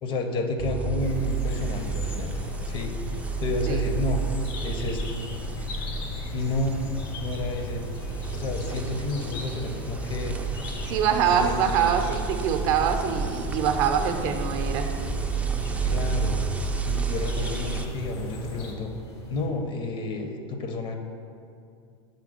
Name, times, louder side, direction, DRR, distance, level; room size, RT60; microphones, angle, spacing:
voice 1, 0.0-2.3 2.6-2.9 3.4-4.2 4.6-5.2 6.3-6.8 7.2-7.8 8.3-10.4 11.3-11.7 15.9-16.4 16.8-18.9 19.3-20.9, left 2 dB, 35° left, 5 dB, 0.7 m, -30 dB
sound 1, 0.6-17.9, right 5 dB, 10° right, 0.4 m, -31 dB
sound 2, 1.0-18.7, left 2 dB, 60° left, 0.9 m, -38 dB
sound 3, 1.7-19.5, right 1 dB, 80° left, 1.4 m, -41 dB
voice 2, 10.9-15.1, right 8 dB, 55° right, 6 dB, 0.6 m, -24 dB
5.8 x 3.4 x 5.0 m, 2.4 s
hypercardioid pair, 95°, 14 cm